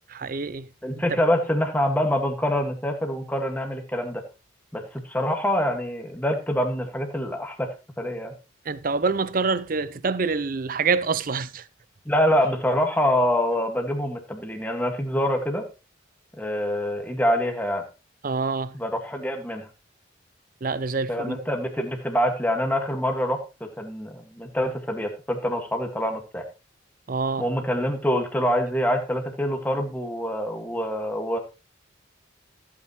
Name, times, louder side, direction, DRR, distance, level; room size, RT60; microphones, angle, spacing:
voice 1, 0.1-0.7 8.7-11.6 18.2-18.8 20.6-21.5 27.1-27.5, right 4 dB, 45° right, 0.6 m, -26 dB
voice 2, 0.8-4.2 4.7-7.7 8.0-8.3 12.1-15.7 16.4-17.8 18.7-19.7 21.1-26.4 27.4-31.4, equal, 10° left, 1.8 m, -25 dB
15.0 x 8.5 x 3.1 m
head